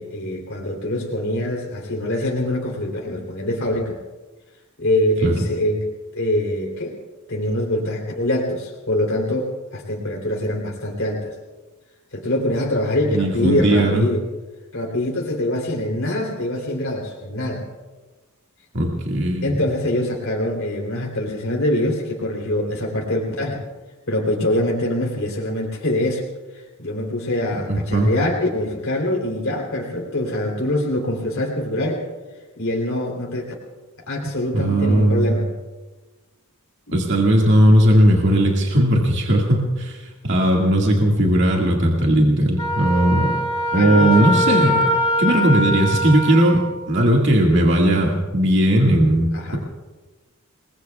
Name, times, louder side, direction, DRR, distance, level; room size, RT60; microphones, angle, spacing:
voice 1, 0.0-4.0 4.8-5.9 6.1-7.0 7.3-11.3 12.1-14.2 14.7-17.7 19.4-23.6 24.1-26.2 26.5-32.0 32.6-33.5 34.1-35.5 36.9-37.0 43.7-44.4 49.3-49.6, left 1 dB, 65° left, -1 dB, 3.4 m, -24 dB
voice 2, 13.1-14.1 18.7-19.5 27.7-28.1 34.2-35.3 36.9-43.4 43.7-44.9 45.2-49.6, right 1 dB, 55° right, -1 dB, 2.0 m, -17 dB
Wind instrument woodwind instrument, 42.6-46.7, left 1 dB, 25° left, 5.6 m, -22 dB
29.0 x 21.0 x 2.4 m, 1.3 s
head